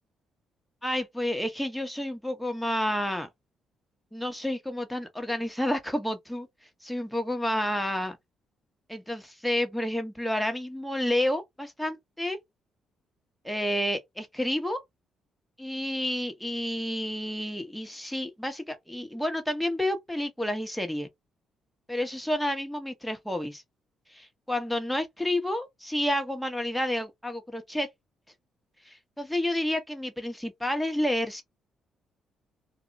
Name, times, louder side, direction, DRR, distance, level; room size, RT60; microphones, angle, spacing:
voice 1, 0.8-3.3 4.1-6.5 6.8-8.2 8.9-12.4 13.4-14.8 15.6-21.1 21.9-23.6 24.1-27.9 28.8-31.4, left 1 dB, 5° left, 0.8 m, -30 dB
2.1 x 2.1 x 3.8 m
cardioid pair, 90°, 0 cm